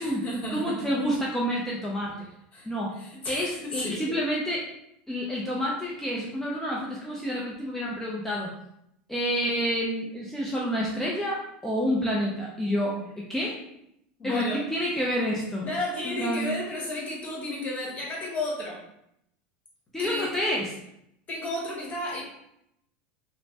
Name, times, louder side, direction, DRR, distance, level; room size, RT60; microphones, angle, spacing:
voice 1, 0.0-0.9 2.5-2.7 2.9-4.2 14.2-14.7 15.6-18.8 20.0-20.3 21.3-22.2, left 1 dB, 30° left, -3 dB, 1.1 m, -33 dB
voice 2, 0.5-2.1 2.7-2.9 3.3-4.6 5.1-8.5 9.1-13.0 13.3-13.5 14.2-15.6 16.0-16.6 19.9-20.7, equal, 5° left, -4 dB, 0.4 m, -28 dB
3.1 x 2.1 x 2.7 m, 0.78 s
supercardioid pair, 125°, 5 cm